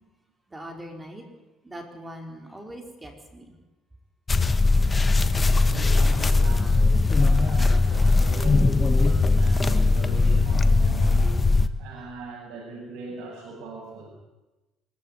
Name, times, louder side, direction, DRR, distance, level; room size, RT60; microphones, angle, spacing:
voice 1, 0.5-1.2 1.6-3.5, equal, 15° right, 3 dB, 4.7 m, -41 dB
sound 1, 4.3-11.7, left 3 dB, 20° left, 1.3 m, -20 dB
voice 2, 5.6-11.4 11.8-14.1, right 3 dB, 75° right, -3 dB, 7.3 m, -39 dB
24.5 x 15.0 x 9.6 m, 1.1 s
cardioid pair, 110°, 0 cm